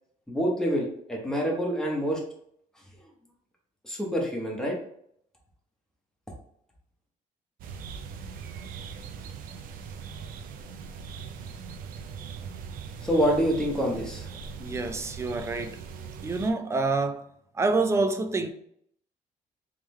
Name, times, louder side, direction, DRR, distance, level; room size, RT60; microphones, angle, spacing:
voice 1, 0.3-2.2 3.8-4.7 13.0-14.3, equal, 5° left, 1.0 m, -26 dB
sound 1, 7.6-16.5, right 6 dB, 80° right, 0.5 m, -40 dB
voice 2, 14.6-15.8 16.2-17.3 17.5-18.5, right 3 dB, 20° right, 0.4 m, -27 dB
3.6 x 3.2 x 3.1 m
cardioid pair, 145°, 14 cm